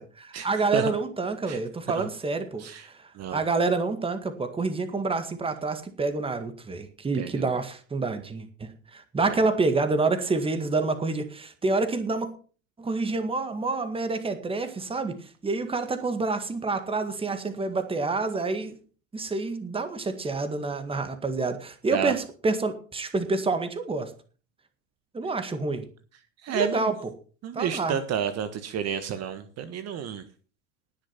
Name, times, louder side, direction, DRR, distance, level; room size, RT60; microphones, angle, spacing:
voice 1, 0.2-2.9 3.3-12.3 12.8-18.8 19.1-24.1 25.1-25.9 26.5-27.0 27.5-28.0, right 3 dB, 15° right, 8 dB, 1.9 m, -28 dB
voice 2, 7.1-7.5 9.2-9.3 21.9-22.1 26.4-26.9 27.4-30.2, right 8 dB, 40° right, 10 dB, 1.5 m, -30 dB
19.0 x 6.6 x 5.9 m, 0.40 s
supercardioid pair, 110°, 39 cm